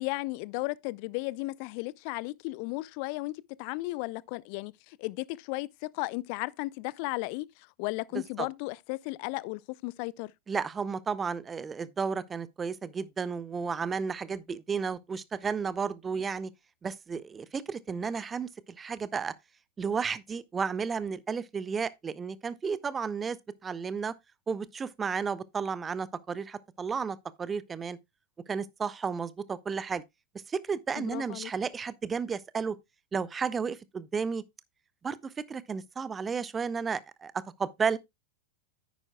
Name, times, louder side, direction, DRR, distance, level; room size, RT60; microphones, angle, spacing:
voice 1, 0.0-3.3 3.6-5.7 5.9-10.3 31.0-31.5, left 22 dB, 45° left, 0.4 m, -35 dB
voice 2, 10.5-16.5 16.8-18.5 18.8-19.3 19.8-23.4 23.6-24.1 24.5-28.0 28.5-30.0 30.5-32.8 33.1-34.4 35.0-38.0, right 5 dB, 20° right, 0.6 m, -33 dB
9.8 x 9.1 x 2.2 m
figure-of-eight pair, 90°, 0 cm